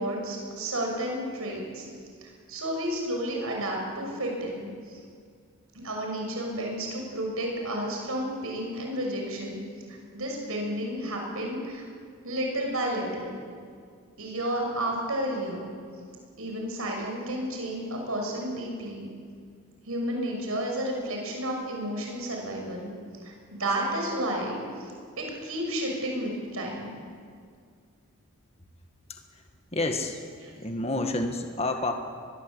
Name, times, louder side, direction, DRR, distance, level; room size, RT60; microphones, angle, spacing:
voice 1, 0.0-1.8 2.2-5.0 5.7-11.8 12.2-13.4 14.2-15.7 16.4-19.1 19.8-22.9 23.2-24.9 25.2-27.0 30.4-30.5, right 1 dB, 70° right, 1 dB, 6.5 m, -32 dB
voice 2, 29.1-29.4 29.7-30.2 30.5-31.9, left 2 dB, 25° left, 5 dB, 1.8 m, -29 dB
22.0 x 21.5 x 8.1 m, 2.1 s
head